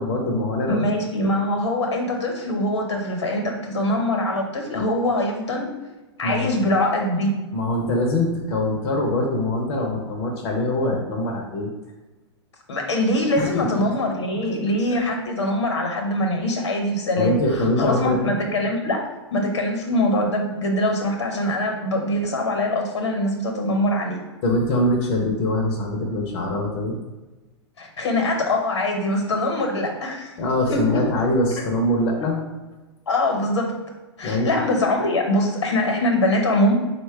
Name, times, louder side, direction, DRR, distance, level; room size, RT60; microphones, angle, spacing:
voice 1, 0.0-0.8 1.2-1.3 4.7-4.9 6.2-6.5 7.5-11.7 13.4-13.7 14.9-15.0 17.2-18.2 24.4-27.0 30.4-32.4 34.2-34.5, left 1 dB, 60° left, 0 dB, 0.7 m, -23 dB
voice 2, 0.7-5.7 6.2-7.4 12.7-19.0 19.3-24.2 27.8-30.3 30.7-31.0 32.2-32.3 33.1-33.7 34.2-36.7, left 1 dB, 85° left, 2 dB, 1.0 m, -23 dB
4.1 x 2.2 x 4.6 m, 1.2 s
hypercardioid pair, 110°, 14 cm